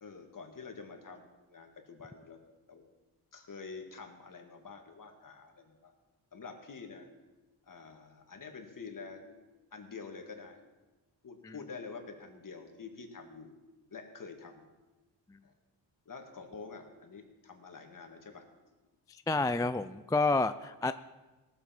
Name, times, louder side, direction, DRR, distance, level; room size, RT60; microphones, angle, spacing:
voice 1, 0.0-2.4 2.7-2.9 3.3-5.9 6.3-7.1 7.6-10.6 11.2-13.5 13.9-14.6 15.4-15.5 16.1-18.4, left 4 dB, 50° left, 4 dB, 2.0 m, -47 dB
voice 2, 19.3-20.9, left 3 dB, 10° left, 11 dB, 0.3 m, -29 dB
18.0 x 7.4 x 5.9 m, 1.2 s
wide cardioid pair, 100°, 41 cm